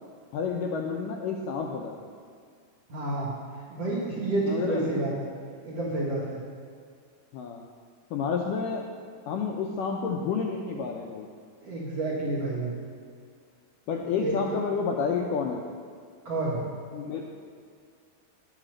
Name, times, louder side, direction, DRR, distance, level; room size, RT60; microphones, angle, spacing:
voice 1, 0.3-2.0 4.5-4.9 7.3-7.6 8.1-8.9 9.3-11.3 13.9-15.6 16.9-17.2, left 5 dB, 85° left, 1 dB, 1.9 m, -30 dB
voice 2, 2.9-3.3 3.7-5.2 5.6-6.4 11.6-12.7 14.2-14.3 16.3-16.6, right 2 dB, 50° right, -7 dB, 2.2 m, -29 dB
10.0 x 9.0 x 6.3 m, 2.2 s
omnidirectional pair, 4.6 m